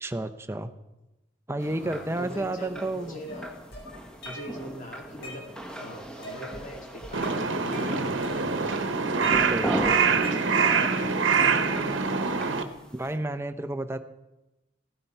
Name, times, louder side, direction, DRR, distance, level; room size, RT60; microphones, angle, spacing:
voice 1, 0.0-0.7 1.5-3.2 9.2-9.9 12.9-14.0, right 1 dB, 15° right, 9 dB, 0.6 m, -31 dB
sound 1, 1.6-13.2, right 1 dB, 5° left, 1.3 m, -39 dB
voice 2, 1.8-3.6 4.2-8.5 9.2-12.0, equal, 45° left, 0 dB, 2.7 m, -42 dB
sound 2, 3.3-4.7 5.0-5.8 6.2-6.7 7.0-8.8 9.2-10.8, left 1 dB, 65° left, 5.0 m, -44 dB
Crow, 7.1-12.6, right 5 dB, 85° right, 1.0 m, -24 dB
16.0 x 9.6 x 4.5 m, 1.0 s
head